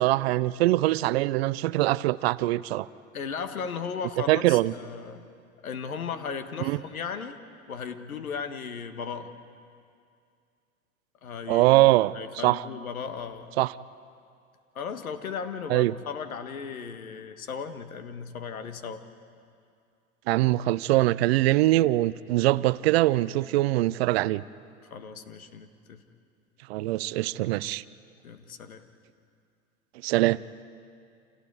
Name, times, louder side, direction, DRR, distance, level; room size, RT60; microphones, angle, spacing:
voice 1, 0.0-2.9 4.3-4.7 6.6-6.8 11.5-12.1 12.4-12.6 13.6-13.7 15.7-15.9 20.3-24.4 26.7-27.8 30.0-30.4, right 17 dB, 45° right, 0.6 m, -23 dB
voice 2, 3.1-5.3 5.6-7.4 7.7-9.3 11.2-11.7 12.1-13.5 14.7-19.0 20.9-21.0 24.9-26.0 28.2-28.8, left 6 dB, 75° left, 1.7 m, -36 dB
29.5 x 27.5 x 4.9 m
figure-of-eight pair, 90°, 43 cm